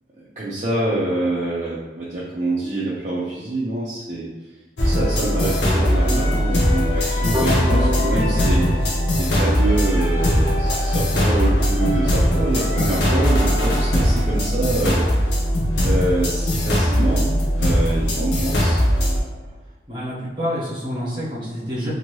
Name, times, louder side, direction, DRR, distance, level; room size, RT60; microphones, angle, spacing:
voice 1, 0.4-4.3 4.8-8.8 9.1-15.0 15.8-19.2, right 2 dB, 40° right, -7 dB, 0.4 m, -25 dB
sound 1, 4.8-19.2, equal, 70° left, 0.6 m, -20 dB
sound 2, 7.3-10.3, left 1 dB, ahead, 1.0 m, -28 dB
voice 2, 19.9-21.9, equal, 25° right, -8 dB, 1.0 m, -27 dB
2.7 x 2.6 x 2.9 m, 1.2 s
head